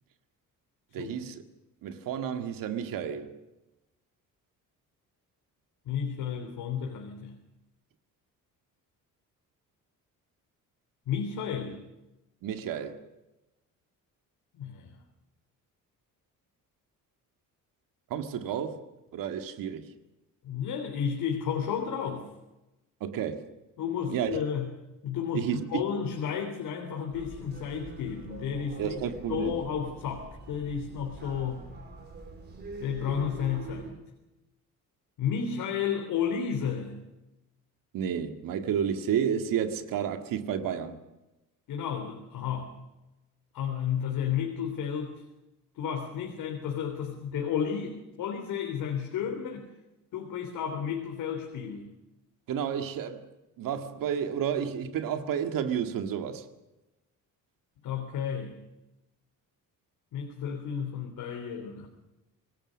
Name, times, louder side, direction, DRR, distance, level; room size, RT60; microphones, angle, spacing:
voice 1, 0.9-1.4 1.8-3.3 12.4-13.0 18.1-18.8 19.1-19.9 23.0-23.5 24.1-24.3 25.3-25.8 28.8-29.6 37.9-41.0 52.5-53.3 53.6-56.5, right 8 dB, 75° right, 2.2 m, -31 dB
voice 2, 5.8-7.3 11.1-11.8 14.5-14.9 20.4-22.3 23.8-24.7 25.0-29.0 29.3-31.7 32.8-34.0 35.2-37.0 41.7-42.8 43.5-45.2 45.7-49.7 50.1-51.9 57.8-58.6 60.1-61.9, left 7 dB, 80° left, 3.5 m, -32 dB
sound 1, 27.1-33.9, right 2 dB, 30° right, 4.7 m, -44 dB
26.5 x 19.5 x 6.4 m
cardioid pair, 175°, 34 cm